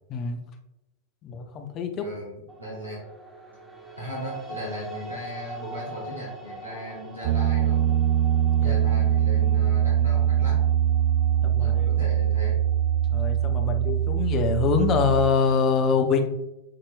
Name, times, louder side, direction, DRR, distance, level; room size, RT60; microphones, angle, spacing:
voice 1, 1.2-2.1 8.6-8.8 11.4-11.9 13.1-16.3, left 5 dB, 35° left, 6 dB, 0.6 m, -24 dB
voice 2, 2.0-3.0 4.0-7.9 8.6-10.6 11.6-12.6, equal, 85° right, -6 dB, 1.1 m, -37 dB
sound 1, 2.5-14.7, right 2 dB, 20° right, 1.1 m, -43 dB
Piano, 7.2-15.3, right 10 dB, 55° right, 0.4 m, -22 dB
7.4 x 2.9 x 2.3 m, 0.93 s
figure-of-eight pair, 90°, 0 cm